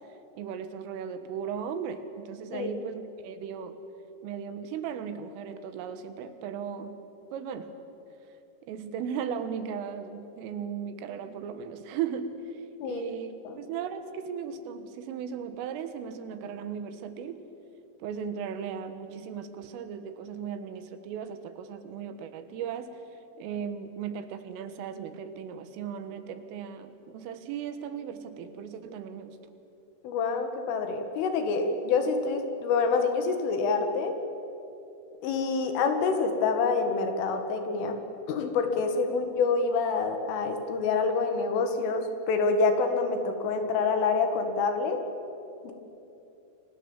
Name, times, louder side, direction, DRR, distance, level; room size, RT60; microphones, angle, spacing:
voice 1, 0.4-3.8 4.2-7.0 7.3-7.7 8.7-17.5 18.0-23.0 23.4-29.4 39.1-39.2, right 7 dB, 85° right, 9 dB, 4.0 m, -37 dB
voice 2, 30.0-34.2 35.2-38.0 38.3-45.0 45.6-45.7, left 4 dB, 80° left, 6 dB, 4.5 m, -27 dB
30.0 x 23.0 x 7.4 m, 2.9 s
omnidirectional pair, 5.7 m